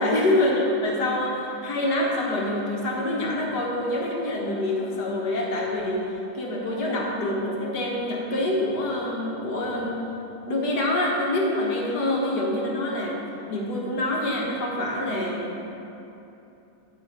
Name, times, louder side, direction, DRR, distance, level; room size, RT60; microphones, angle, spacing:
voice 1, 0.0-6.1 6.3-10.0 10.5-13.2 13.5-15.5, left 1 dB, 70° left, -2 dB, 1.9 m, -26 dB
10.0 x 8.5 x 4.3 m, 2.9 s
omnidirectional pair, 1.8 m